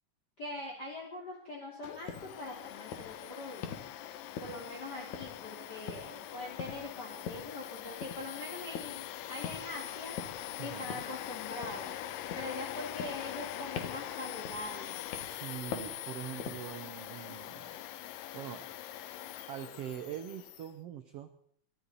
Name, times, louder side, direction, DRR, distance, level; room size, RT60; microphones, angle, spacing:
voice 1, 0.4-3.7 4.4-10.2 10.6-12.0 12.3-15.1, left 2 dB, 30° left, -3 dB, 2.8 m, -43 dB
Domestic sounds home sounds, 1.8-20.7, left 12 dB, 90° left, 2.5 m, -43 dB
sound 1, 2.1-2.3 2.9-3.2 3.6-3.9 4.4-4.8 5.1-5.6 5.9-6.2 6.6-6.9 7.3-7.5 8.0-8.3 8.7-9.0 9.4-9.8 10.2-10.5 10.9-11.2 11.6-12.0 12.3-12.6 13.0-13.5 13.8-14.1 14.4-14.8 15.1-15.4 15.7-16.0 16.4-16.7, left 7 dB, 65° left, 2.7 m, -42 dB
voice 2, 10.6-11.0 15.2-17.8 18.3-18.6 19.5-21.3, right 10 dB, 70° right, 8 dB, 1.4 m, -43 dB
23.0 x 13.0 x 4.1 m, 0.63 s
omnidirectional pair, 3.8 m